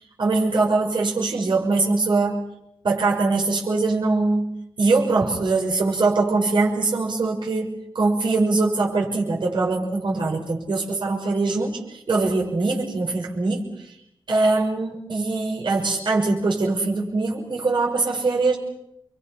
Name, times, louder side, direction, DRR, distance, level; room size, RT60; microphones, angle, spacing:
voice 1, 0.2-2.4 2.8-4.5 4.8-13.7 14.3-18.6, right 3 dB, 65° right, -2 dB, 6.2 m, -22 dB
29.5 x 23.5 x 6.0 m, 0.77 s
wide cardioid pair, 140°, 9 cm